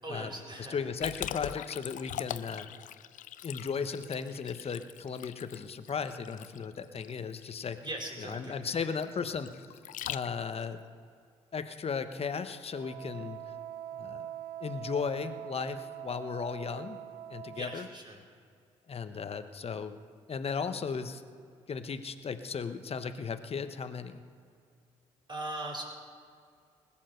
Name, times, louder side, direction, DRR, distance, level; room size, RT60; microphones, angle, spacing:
voice 1, 0.0-0.8 7.8-8.8 17.5-18.2 25.3-25.8, right 1 dB, 30° right, 0 dB, 4.5 m, -40 dB
voice 2, 0.6-2.7 3.4-7.8 8.3-9.7 10.1-10.8 11.5-13.4 14.0-14.3 14.6-17.0 17.3-17.9 18.9-20.0 20.3-21.2 21.7-24.2, left 6 dB, 40° left, 9 dB, 1.0 m, -36 dB
Liquid, 1.0-10.6, left 12 dB, 60° left, 0.5 m, -42 dB
Wind instrument woodwind instrument, 12.7-17.9, right 10 dB, 65° right, 0.6 m, -43 dB
20.0 x 7.4 x 6.4 m, 2.2 s
hypercardioid pair, 45°, 15 cm